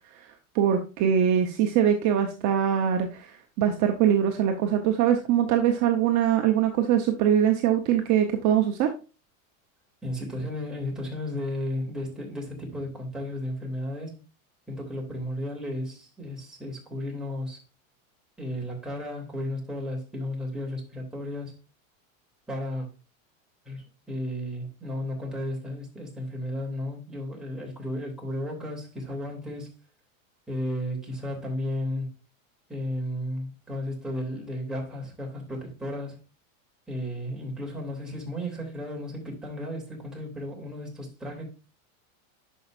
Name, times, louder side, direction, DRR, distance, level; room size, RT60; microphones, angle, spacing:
voice 1, 0.5-8.9, right 9 dB, 45° right, 1.0 m, -23 dB
voice 2, 10.0-14.2 14.7-17.6 18.4-21.6 22.5-22.9 23.6-29.7 30.5-32.1 32.7-36.2 36.9-41.4, left 1 dB, ahead, 2.8 m, -34 dB
10.5 x 5.5 x 2.5 m
supercardioid pair, 130°, 41 cm